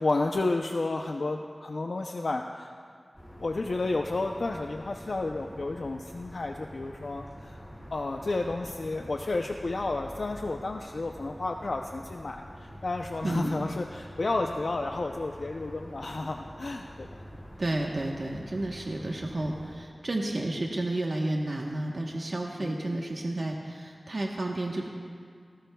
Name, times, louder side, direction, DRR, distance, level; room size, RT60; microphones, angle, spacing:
voice 1, 0.0-2.7 3.4-7.6 7.9-17.1 22.6-23.0, left 2 dB, 70° left, 2 dB, 0.6 m, -31 dB
sound 1, 3.1-19.7, equal, 5° left, 4.4 m, -46 dB
voice 2, 13.2-13.7 17.6-24.9, right 1 dB, 55° right, -1 dB, 1.1 m, -31 dB
20.0 x 18.0 x 2.3 m, 2.2 s
wide cardioid pair, 75°, 0 cm